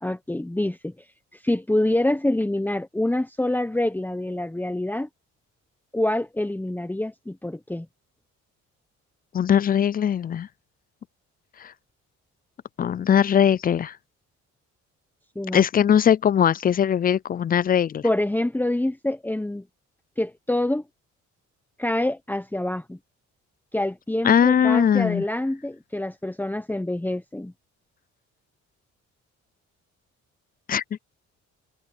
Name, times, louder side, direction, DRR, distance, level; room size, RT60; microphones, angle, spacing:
voice 1, 0.0-0.9 1.4-5.1 5.9-7.9 15.3-15.6 18.0-19.6 20.2-20.8 21.8-23.0 23.7-27.5, left 1 dB, 5° left, 1.1 m, -26 dB
voice 2, 9.3-10.5 11.6-11.7 12.8-13.9 15.5-18.1 24.2-25.2 30.7-30.8, left 8 dB, 30° left, 0.4 m, -20 dB
cardioid pair, 90°, 30 cm